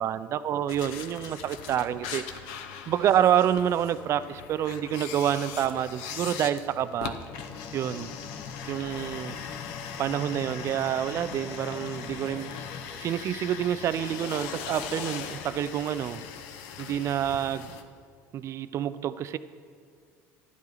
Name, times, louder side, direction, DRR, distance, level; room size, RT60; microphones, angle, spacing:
voice 1, 0.0-2.3 2.9-7.2 7.7-8.1 8.7-9.4 10.0-12.5 13.0-16.2 16.8-17.7 18.3-19.4, right 10 dB, 45° right, 14 dB, 0.4 m, -28 dB
sound 1, 0.7-17.8, left 8 dB, 80° left, 0.8 m, -40 dB
sound 2, 7.3-12.8, left 5 dB, 50° left, 1.1 m, -42 dB
11.5 x 10.5 x 3.9 m, 2.1 s
supercardioid pair, 105°, 7 cm